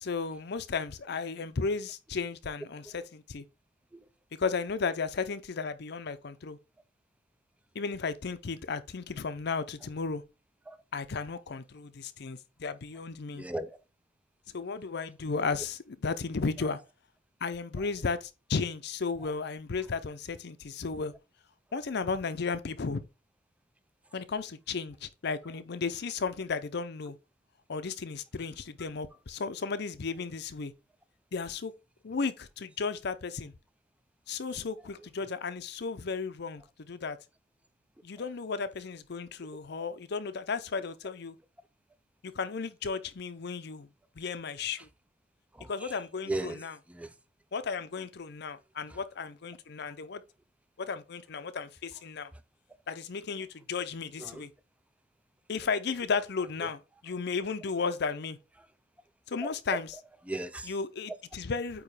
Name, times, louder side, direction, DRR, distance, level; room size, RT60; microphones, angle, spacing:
voice 1, 0.0-3.4 4.3-6.6 7.7-10.2 10.9-13.4 14.5-16.8 17.4-21.1 21.7-23.0 24.1-27.2 27.7-30.7 31.3-31.7 32.0-33.5 34.3-37.2 38.0-41.4 42.2-43.9 44.1-44.9 45.7-46.7 47.5-50.2 50.8-52.3 52.9-54.5 55.5-58.4 59.3-59.9 60.6-61.8, left 4 dB, 65° left, 0.6 m, -34 dB
voice 2, 13.3-13.8 45.5-46.0 46.3-47.1 48.9-49.0 54.2-54.4 56.6-56.7 59.4-59.5 60.3-60.7, right 1 dB, 5° right, 0.4 m, -37 dB
8.7 x 2.9 x 4.8 m
head